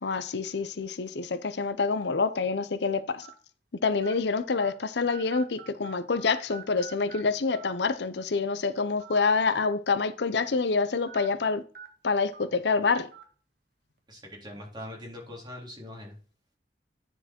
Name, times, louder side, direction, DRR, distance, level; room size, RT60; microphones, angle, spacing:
voice 1, 0.0-3.3 3.8-11.6 12.0-13.1, left 4 dB, 75° left, 0.7 m, -27 dB
sound 1, 1.1-1.3 2.0-2.1 3.2-3.3 4.0-4.1 4.6-4.7 5.1-6.2 6.5-7.2 7.5-7.6 8.9-9.2 9.6-9.7 11.1-11.3 11.7-11.9 12.3-12.5 13.1-13.2, right 7 dB, 55° right, 1.5 m, -45 dB
voice 2, 14.1-16.2, left 1 dB, 25° right, 3.4 m, -42 dB
10.0 x 4.7 x 4.3 m
head